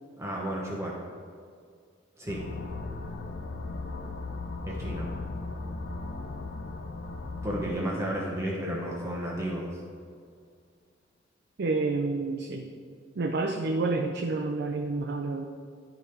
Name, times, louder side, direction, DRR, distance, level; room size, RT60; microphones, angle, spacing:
voice 1, 0.2-1.0 2.2-2.4 4.7-5.1 7.4-9.8, equal, 15° right, -3 dB, 0.9 m, -32 dB
sound 1, 2.3-8.8, left 3 dB, 65° left, 0.6 m, -37 dB
voice 2, 11.6-12.7 13.2-15.4, right 3 dB, 60° right, 3 dB, 0.5 m, -29 dB
10.0 x 4.9 x 4.4 m, 2.1 s
head